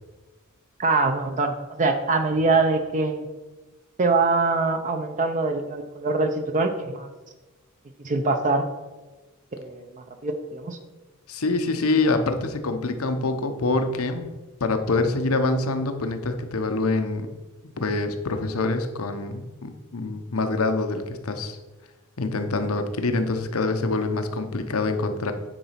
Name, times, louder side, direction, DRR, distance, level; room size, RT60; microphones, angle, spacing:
voice 1, 0.8-3.2 4.0-7.1 8.0-8.6 9.5-9.8 10.2-10.8, right 3 dB, 35° right, 6 dB, 0.6 m, -23 dB
voice 2, 11.3-14.3 14.6-17.3 17.8-21.6 22.2-25.3, left 3 dB, 85° left, 7 dB, 0.9 m, -25 dB
9.2 x 4.0 x 5.8 m, 1.2 s
head